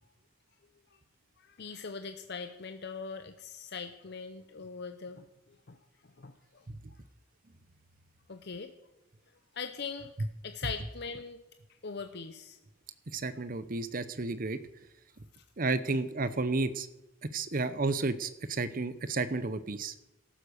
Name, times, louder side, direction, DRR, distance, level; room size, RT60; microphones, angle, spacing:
voice 1, 1.4-5.8 6.2-6.6 8.3-8.7 9.5-10.1 10.4-11.4 11.8-12.6 15.3-15.4 15.8-16.0, left 5 dB, 50° left, 7 dB, 0.8 m, -41 dB
voice 2, 13.1-14.6 15.6-16.9 17.3-19.9, right 3 dB, 40° right, 14 dB, 0.8 m, -32 dB
14.5 x 12.0 x 6.5 m, 0.95 s
head